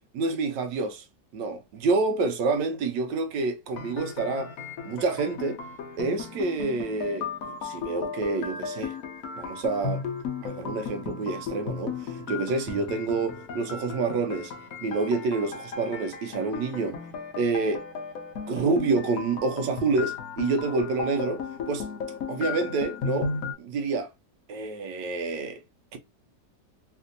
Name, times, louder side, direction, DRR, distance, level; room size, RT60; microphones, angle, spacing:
voice 1, 0.1-1.0 1.3-4.5 4.8-5.6 6.0-9.0 9.4-10.0 10.4-14.5 14.8-17.0 17.4-17.9 18.5-21.9 22.3-23.3 23.6-24.1 24.5-25.6 25.9-26.0, right 3 dB, 85° right, 1.4 m, -28 dB
sound 1, 3.7-23.5, left 5 dB, 65° left, 1.0 m, -35 dB
3.4 x 2.6 x 2.6 m
omnidirectional pair, 1.9 m